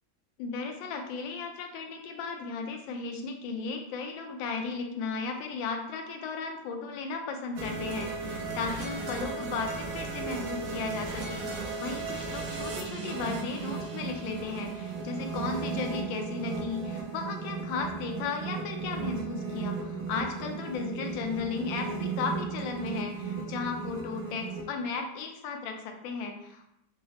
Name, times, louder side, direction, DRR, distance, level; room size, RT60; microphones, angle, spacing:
voice 1, 0.4-26.6, left 4 dB, 80° left, 4 dB, 1.3 m, -35 dB
sound 1, 7.6-24.6, right 4 dB, 70° right, 0.8 m, -35 dB
3.8 x 2.0 x 4.0 m, 0.80 s
omnidirectional pair, 2.2 m